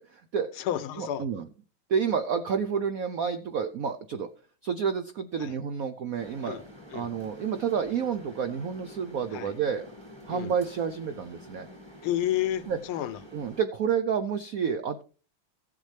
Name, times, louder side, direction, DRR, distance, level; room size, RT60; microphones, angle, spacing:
voice 1, 0.0-0.6 1.0-1.4 1.9-4.3 4.6-6.6 6.9-9.9 10.3-11.7 12.7-12.8 13.3-15.0, right 7 dB, 80° right, 0.7 m, -29 dB
voice 2, 0.6-1.3 5.4-5.5 6.4-6.6 6.9-7.1 9.3-9.5 10.3-10.5 12.0-13.2, left 12 dB, 85° left, 1.6 m, -31 dB
sound 1, 6.2-13.7, left 1 dB, 15° right, 1.3 m, -48 dB
15.5 x 7.4 x 3.3 m
omnidirectional pair, 2.3 m